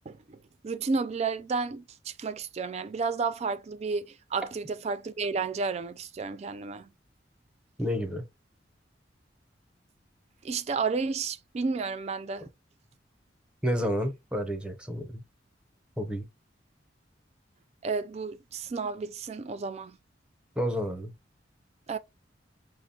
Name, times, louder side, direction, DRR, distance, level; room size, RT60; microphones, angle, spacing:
voice 1, 0.1-0.4 0.6-6.9 10.4-12.5 17.8-20.0 21.9-22.0, right 4 dB, 35° right, 0.3 m, -32 dB
voice 2, 7.8-8.3 13.6-15.2 16.0-16.3 20.6-21.1, equal, 5° right, 0.7 m, -30 dB
5.8 x 2.0 x 2.7 m
head